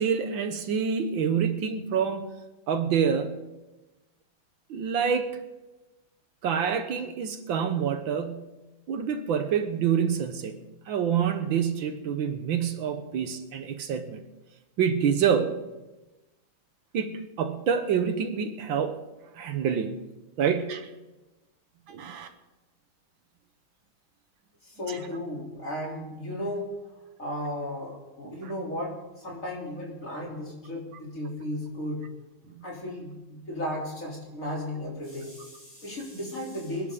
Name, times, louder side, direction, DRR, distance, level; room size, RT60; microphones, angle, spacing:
voice 1, 0.0-2.3 2.7-3.3 4.7-5.4 6.4-8.5 8.9-10.6 10.9-14.2 14.8-15.6 16.9-19.0 19.4-20.0 20.4-20.9 21.9-22.3 24.9-25.0 28.2-28.3 32.6-32.7, right 7 dB, 75° right, 8 dB, 1.7 m, -27 dB
voice 2, 24.6-26.7 27.2-32.1 32.6-36.9, left 1 dB, 40° left, -3 dB, 3.9 m, -35 dB
25.0 x 11.0 x 3.9 m, 1.1 s
omnidirectional pair, 2.2 m